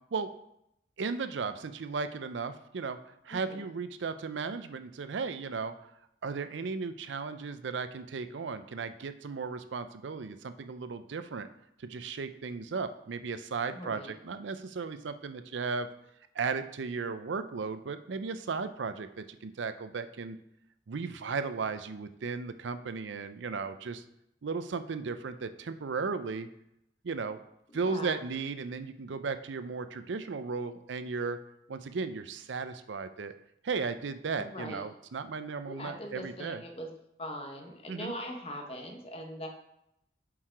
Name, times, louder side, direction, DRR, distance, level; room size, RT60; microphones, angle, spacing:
voice 1, 1.0-3.0 3.2-5.7 6.2-11.5 11.8-15.9 16.3-20.4 20.9-24.0 24.4-26.5 27.0-27.4 27.7-31.4 31.7-33.3 33.6-36.6 37.9-38.1, right 4 dB, 80° right, 11 dB, 0.5 m, -35 dB
voice 2, 3.3-3.7 13.7-14.1 27.9-28.2 34.4-34.8 35.7-36.9 37.2-39.5, equal, 30° left, 3 dB, 1.0 m, -41 dB
7.4 x 4.7 x 4.6 m, 0.80 s
head